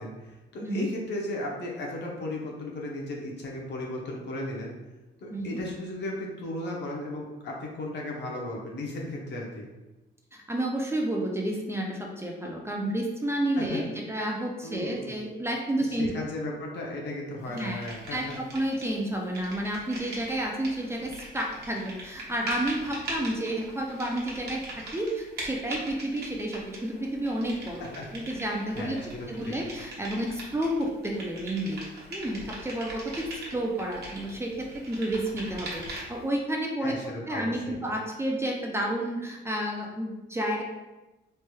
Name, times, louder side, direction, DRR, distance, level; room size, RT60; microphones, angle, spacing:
voice 1, 0.0-4.7 5.2-9.6 13.6-13.8 14.6-15.2 15.8-18.4 27.8-28.1 28.7-29.6 36.8-37.8, left 1 dB, 60° left, -2 dB, 0.8 m, -35 dB
voice 2, 10.3-16.1 17.5-17.8 18.1-27.9 28.1-29.0 29.3-31.8 32.1-33.3 33.5-37.0 37.3-40.6, right 1 dB, 15° right, 0 dB, 0.4 m, -30 dB
sound 1, 17.6-19.0 19.2-36.3, right 1 dB, 55° right, 1.0 m, -41 dB
3.2 x 2.9 x 2.2 m, 1.1 s
cardioid pair, 90°, 20 cm